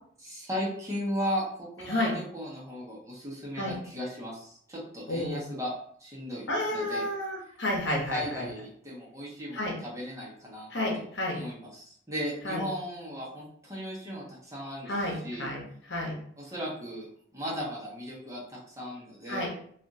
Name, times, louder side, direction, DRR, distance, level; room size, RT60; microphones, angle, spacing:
voice 1, 0.2-5.7 6.0-7.0 8.1-10.7 11.3-14.9 15.2-15.4 16.4-19.5, equal, 15° right, -6 dB, 1.0 m, -36 dB
voice 2, 5.1-5.4 6.5-8.5 9.5-9.7 10.7-11.4 12.4-12.6 14.9-15.6 15.9-16.1 19.3-19.5, left 1 dB, 65° left, -2 dB, 0.9 m, -30 dB
3.4 x 2.5 x 2.6 m, 0.62 s
head